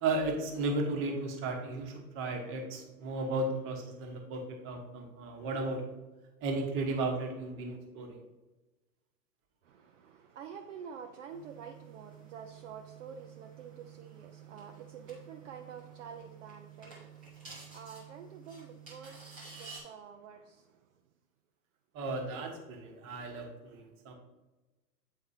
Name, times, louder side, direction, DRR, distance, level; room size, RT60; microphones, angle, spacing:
voice 1, 0.0-6.0 6.4-8.2 21.9-24.1, right 2 dB, 25° right, 3 dB, 1.1 m, -35 dB
voice 2, 9.6-20.7, right 7 dB, 50° right, 4 dB, 0.6 m, -48 dB
sound 1, 11.3-19.8, right 6 dB, 5° right, 0.3 m, -51 dB
8.3 x 4.5 x 2.7 m, 1.1 s
hypercardioid pair, 120°, 49 cm